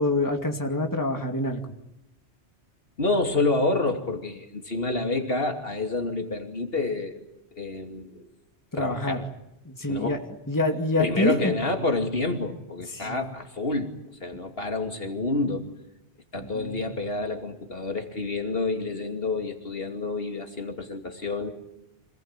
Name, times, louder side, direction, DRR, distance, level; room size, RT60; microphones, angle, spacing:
voice 1, 0.0-1.6 8.7-9.2 9.6-11.5 12.9-13.2 16.4-16.8, left 2 dB, 15° left, 4 dB, 2.4 m, -26 dB
voice 2, 3.0-7.2 7.6-8.3 8.8-9.2 9.9-10.2 11.0-13.9 14.2-15.7 16.3-21.5, left 2 dB, 60° left, 4 dB, 3.0 m, -28 dB
27.0 x 19.5 x 9.1 m, 0.88 s
omnidirectional pair, 1.1 m